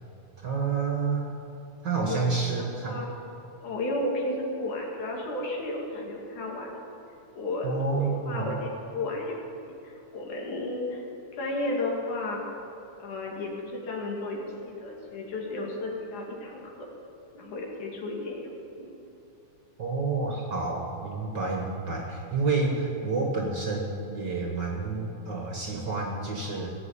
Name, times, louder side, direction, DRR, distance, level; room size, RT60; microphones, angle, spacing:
voice 1, 0.4-1.3 1.8-3.0 7.6-8.5 19.8-26.7, right 4 dB, 45° right, 0 dB, 1.7 m, -29 dB
voice 2, 2.1-3.1 3.6-6.7 7.4-11.0 11.3-12.5 13.0-16.9 17.3-18.9, left 2 dB, 80° left, -1 dB, 3.6 m, -33 dB
18.0 x 7.1 x 8.7 m, 2.9 s
omnidirectional pair, 3.4 m